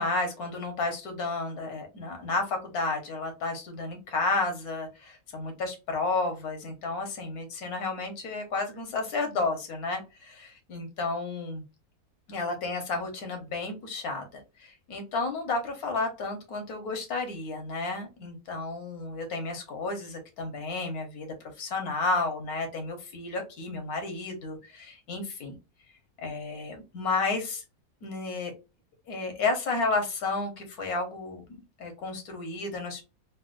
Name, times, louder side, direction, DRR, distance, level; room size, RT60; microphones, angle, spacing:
voice 1, 0.0-11.6 12.3-25.6 26.2-27.6 28.0-28.5 29.1-31.5 31.8-33.0, left 3 dB, 80° left, 5 dB, 1.5 m, -32 dB
4.1 x 2.2 x 2.5 m, 0.27 s
omnidirectional pair, 1.6 m